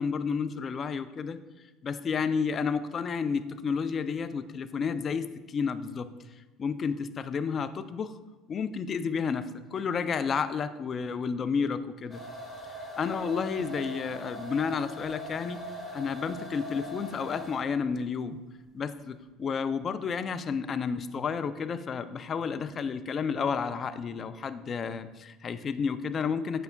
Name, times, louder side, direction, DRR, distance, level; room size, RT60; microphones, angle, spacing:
voice 1, 0.0-1.4 1.8-6.1 6.6-8.1 8.5-12.2 13.0-15.6 15.9-18.4 18.7-26.6, left 6 dB, 35° left, 11 dB, 0.3 m, -31 dB
sound 1, 12.1-17.8, equal, 5° left, 1.3 m, -41 dB
8.0 x 5.3 x 2.2 m, 1.2 s
cardioid pair, 115°, 0 cm